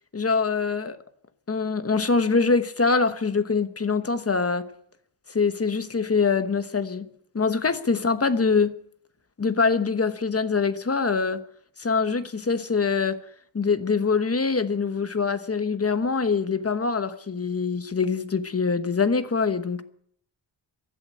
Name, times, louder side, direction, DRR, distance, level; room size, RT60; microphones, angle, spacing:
voice 1, 0.1-1.0 1.5-4.7 5.3-7.1 7.3-8.7 9.4-11.4 11.8-13.2 13.5-19.8, left 4 dB, 35° left, 1.2 m, -24 dB
15.5 x 11.0 x 8.3 m
wide cardioid pair, 150°, 43 cm